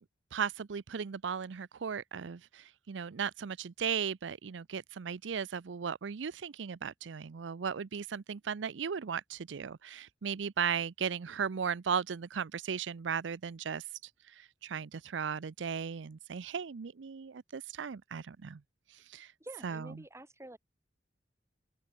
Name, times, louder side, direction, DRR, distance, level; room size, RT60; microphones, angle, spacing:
voice 1, 0.3-13.8 14.3-18.6 18.9-19.3 19.6-19.9, right 7 dB, 90° right, 0.5 m, -36 dB
voice 2, 19.4-20.6, right 1 dB, 15° right, 7.6 m, -48 dB
open air
head